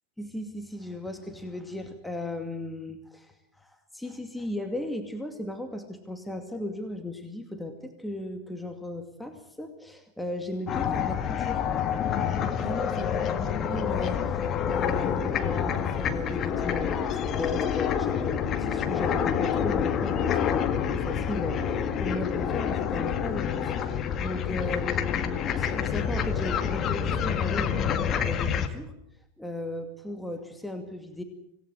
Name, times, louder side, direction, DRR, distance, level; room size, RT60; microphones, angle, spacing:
voice 1, 0.2-11.6 12.5-13.2 13.7-27.8 28.2-28.9 29.4-31.2, left 1 dB, 5° left, 5 dB, 2.4 m, -36 dB
sound 1, 10.7-28.7, left 8 dB, 30° left, 2.1 m, -28 dB
sound 2, 17.9-24.1, left 12 dB, 50° left, 2.0 m, -39 dB
26.0 x 18.5 x 8.0 m, 0.77 s
figure-of-eight pair, 90°, 0 cm